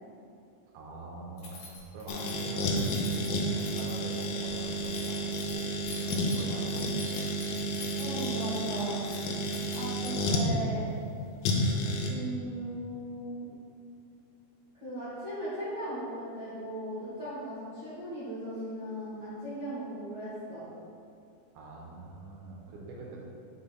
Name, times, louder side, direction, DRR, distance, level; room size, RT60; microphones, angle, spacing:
voice 1, 0.7-7.3 11.9-12.0 21.5-23.3, right 2 dB, 70° right, -3 dB, 2.2 m, -44 dB
Keys jangling, 1.4-10.4, left 2 dB, 65° left, 2.3 m, -47 dB
sound 1, 2.1-10.5 11.4-12.1, equal, 85° left, 2.4 m, -31 dB
voice 2, 8.0-9.0 9.7-10.9 12.1-13.5 14.8-20.7, equal, 85° right, -13 dB, 0.9 m, -37 dB
5.5 x 4.3 x 4.0 m, 2.6 s
omnidirectional pair, 4.2 m